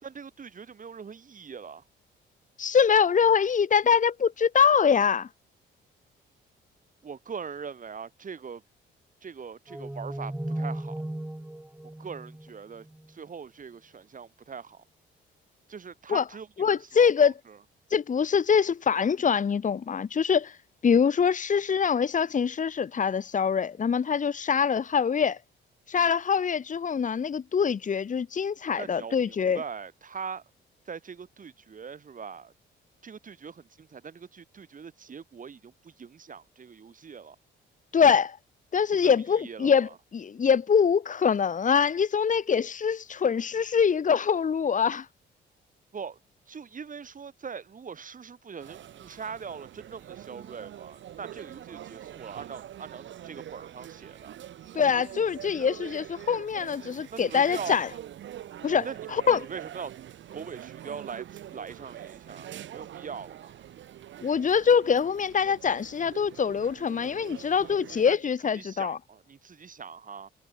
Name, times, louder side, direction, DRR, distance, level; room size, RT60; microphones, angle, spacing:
voice 1, 0.0-1.8 7.0-8.6 9.2-10.9 12.0-14.8 15.7-17.3 28.8-30.4 30.9-32.5 33.0-37.4 38.9-39.7 45.9-46.2 46.5-54.3 57.1-57.8 58.8-59.0 59.3-59.9 60.3-63.6 67.6-67.7 68.0-68.2 68.6-70.3, right 6 dB, 40° right, 6.2 m, -41 dB
voice 2, 2.6-5.3 16.1-16.2 16.6-17.3 17.9-20.6 20.8-25.4 25.9-29.6 37.9-38.4 38.7-45.1 54.7-57.9 58.6-58.9 59.1-59.4 64.2-69.0, left 6 dB, 40° left, 1.7 m, -24 dB
sound 1, 9.7-13.1, right 1 dB, 5° right, 1.8 m, -36 dB
sound 2, 48.6-68.1, right 11 dB, 70° right, 3.1 m, -44 dB
cardioid pair, 90°, 20 cm